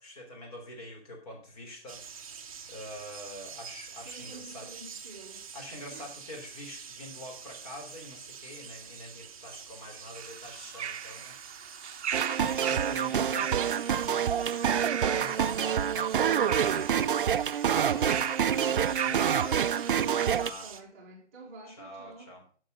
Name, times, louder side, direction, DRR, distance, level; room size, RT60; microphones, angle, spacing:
voice 1, 0.0-4.7 5.5-12.0 12.4-13.9 15.0-16.1 16.4-16.9 17.6-19.6 20.3-20.7 21.7-22.4, left 1 dB, 35° left, 3.3 m, -45 dB
sound 1, 1.9-20.8, right 6 dB, 35° right, 0.8 m, -46 dB
voice 2, 4.0-5.5 5.9-6.1 12.1-12.4 12.8-13.7 20.6-22.3, right 4 dB, 15° right, 1.1 m, -48 dB
sound 2, 10.1-20.3, right 8 dB, 90° right, 0.7 m, -38 dB
sound 3, 12.1-20.5, right 8 dB, 55° right, 0.5 m, -27 dB
9.5 x 6.3 x 6.3 m
hypercardioid pair, 175°, 33 cm